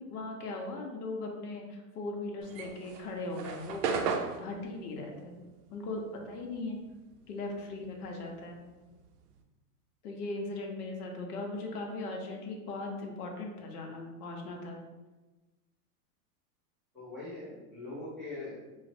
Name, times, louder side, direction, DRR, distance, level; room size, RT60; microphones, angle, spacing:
voice 1, 0.0-5.4 5.7-6.8 7.3-8.6 10.0-14.8, left 2 dB, 80° left, 1 dB, 0.7 m, -39 dB
sound 1, 2.4-7.1 7.4-9.4, right 5 dB, 80° right, 0.5 m, -36 dB
voice 2, 16.9-18.7, left 2 dB, ahead, -13 dB, 0.3 m, -42 dB
3.1 x 2.0 x 2.5 m, 1.2 s
supercardioid pair, 145°, 46 cm